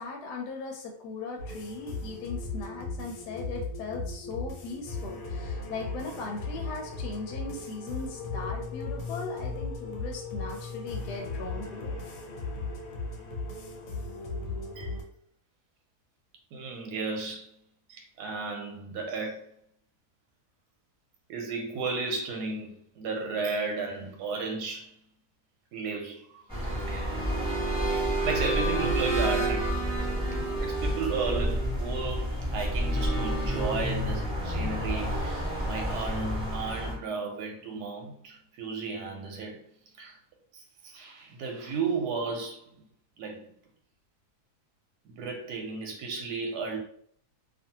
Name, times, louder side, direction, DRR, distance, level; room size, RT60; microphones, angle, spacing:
voice 1, 0.0-12.0, left 4 dB, 90° left, 1.1 m, -38 dB
sound 1, 1.4-15.0, left 3 dB, 65° left, 1.0 m, -37 dB
voice 2, 16.5-17.6 17.9-19.5 21.3-24.9 25.7-26.4 26.9-27.2 28.2-29.8 30.6-39.6 40.0-40.2 40.5-42.7 43.2-43.5 45.0-46.8, right 4 dB, 85° right, 1.2 m, -34 dB
sound 2, 26.5-36.9, right 1 dB, 5° right, 0.8 m, -29 dB
2.6 x 2.5 x 2.7 m
omnidirectional pair, 1.7 m